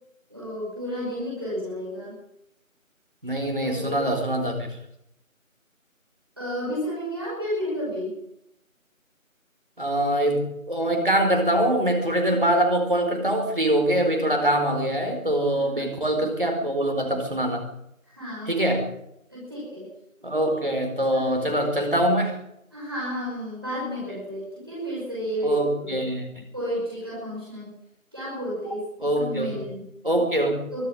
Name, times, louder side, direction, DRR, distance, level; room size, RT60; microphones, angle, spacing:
voice 1, 0.3-2.2 3.6-4.0 6.4-8.1 15.5-15.8 18.1-18.6 19.3-19.9 21.2-21.3 22.7-26.0 26.5-27.8 28.1-29.9 30.7-30.9, equal, 15° right, -8 dB, 5.4 m, -32 dB
voice 2, 3.2-4.7 9.8-17.7 18.5-18.9 20.2-22.4 25.4-26.3 29.0-29.5 30.0-30.7, right 1 dB, 40° right, 3 dB, 4.5 m, -23 dB
23.5 x 11.5 x 9.8 m, 0.79 s
figure-of-eight pair, 180°, 42 cm